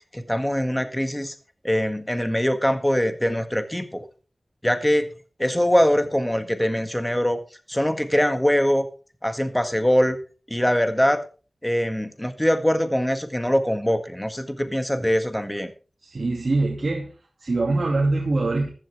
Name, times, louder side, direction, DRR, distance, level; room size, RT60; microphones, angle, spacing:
voice 1, 0.1-1.3 1.6-4.1 4.6-5.1 5.4-7.4 7.7-8.9 9.2-10.2 10.5-11.2 11.6-15.7, equal, 10° left, 8 dB, 1.7 m, -22 dB
voice 2, 16.0-17.1 17.4-18.7, right 2 dB, 65° right, 0 dB, 2.5 m, -23 dB
15.0 x 12.0 x 3.5 m, 0.36 s
wide cardioid pair, 50°, 0 cm